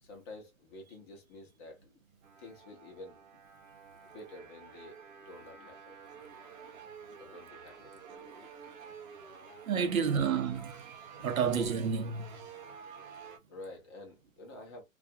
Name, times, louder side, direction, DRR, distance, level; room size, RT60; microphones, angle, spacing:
voice 1, 0.0-1.9 2.4-3.3 4.0-5.0 5.3-6.0 6.4-6.5 7.0-8.5 9.9-10.3 11.2-11.5 13.5-14.8, left 2 dB, 20° left, 0.5 m, -50 dB
sound 1, 2.2-13.4, right 6 dB, 35° right, 0.6 m, -51 dB
voice 2, 9.7-10.7 11.2-12.3, right 6 dB, 80° right, 0.8 m, -29 dB
2.4 x 2.3 x 2.6 m
hypercardioid pair, 140°, 41 cm